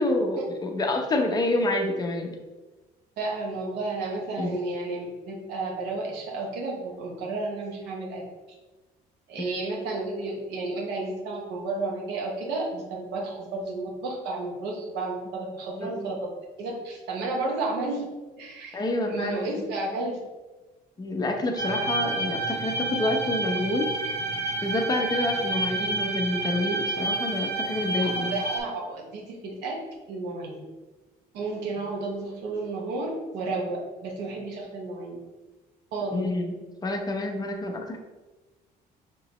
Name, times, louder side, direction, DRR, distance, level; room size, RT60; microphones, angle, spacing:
voice 1, 0.0-2.3 4.4-4.5 9.4-9.7 15.8-16.1 18.7-19.6 21.0-24.2 24.6-28.3 36.1-36.5 36.8-38.0, left 2 dB, 25° left, 2 dB, 0.7 m, -28 dB
voice 2, 3.2-8.2 9.3-16.2 16.6-18.1 18.4-18.8 19.1-20.2 25.4-25.6 28.0-29.8 30.1-30.6 31.3-35.2 35.9-36.3, right 2 dB, 90° right, -2 dB, 1.1 m, -32 dB
sound 1, 21.6-28.6, right 2 dB, 35° right, 1.4 m, -29 dB
5.1 x 3.0 x 3.0 m, 1.2 s
cardioid pair, 110°, 17 cm